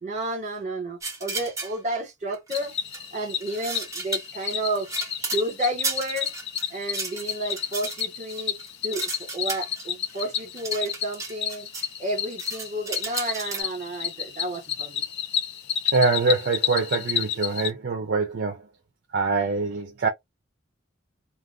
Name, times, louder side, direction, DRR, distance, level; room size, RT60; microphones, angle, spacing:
voice 1, 0.0-2.7 3.1-4.9 5.2-6.3 6.7-8.5 8.8-11.7 12.0-15.0, right 1 dB, 40° right, 1.2 m, -31 dB
sound 1, 1.0-1.7 2.3-3.1 3.4-5.5 5.8-11.9 12.2-13.6, right 3 dB, 15° right, 1.0 m, -34 dB
Cricket, 2.5-17.7, left 9 dB, 60° left, 0.6 m, -31 dB
voice 2, 15.8-18.7 19.1-20.1, right 4 dB, 55° right, 0.5 m, -24 dB
2.5 x 2.3 x 3.5 m
head